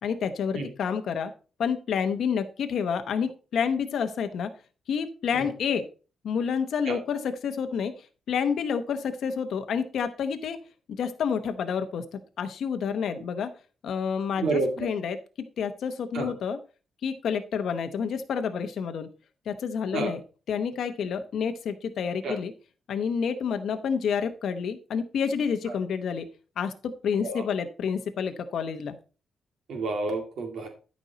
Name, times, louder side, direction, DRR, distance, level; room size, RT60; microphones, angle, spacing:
voice 1, 0.0-1.3 1.6-4.5 4.9-5.9 6.2-7.9 8.3-10.6 11.0-13.5 13.8-16.6 17.0-19.1 19.5-20.2 20.5-22.5 22.9-26.3 26.6-29.0, left 6 dB, 65° left, 8 dB, 0.8 m, -29 dB
voice 2, 14.4-14.9 16.1-16.3 19.9-20.1 22.2-22.3 25.7-25.8 27.2-27.4 29.7-30.7, right 3 dB, 65° right, 3 dB, 2.1 m, -29 dB
12.0 x 5.3 x 4.0 m, 0.34 s
wide cardioid pair, 150°, 0 cm